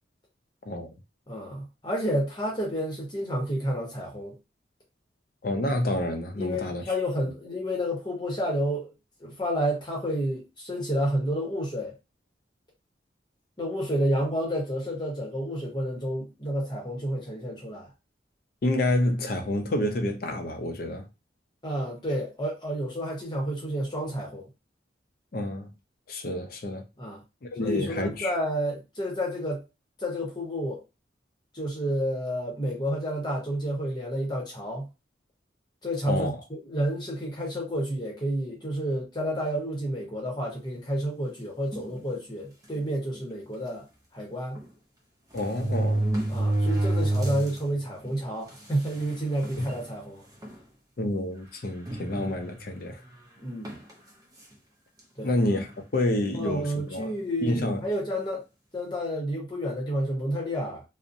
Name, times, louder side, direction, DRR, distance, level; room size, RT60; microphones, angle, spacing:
voice 1, 1.3-4.4 6.4-8.9 9.2-11.9 13.6-17.9 21.6-24.5 27.0-27.2 27.6-29.6 30.0-30.8 31.5-34.9 35.8-43.8 44.1-44.6 46.3-50.2 53.4-53.8 55.2-55.3 56.3-58.4 58.7-60.8, equal, 25° left, 0.8 m, -30 dB
voice 2, 5.4-6.8 18.6-21.1 25.3-25.7 26.1-26.8 27.4-28.3 36.1-36.3 45.3-46.1 49.6-49.7 51.0-53.0 55.2-57.1 57.4-57.8, left 1 dB, 50° left, 0.4 m, -28 dB
sound 1, 41.7-42.0 42.7-42.8 43.1-43.2 44.6-44.7 45.3-47.6 48.0-48.1 49.0-49.1 49.4-49.8 50.4-50.6 51.9-52.7 53.6-53.9, right 1 dB, 20° right, 0.4 m, -27 dB
2.6 x 2.0 x 2.5 m
head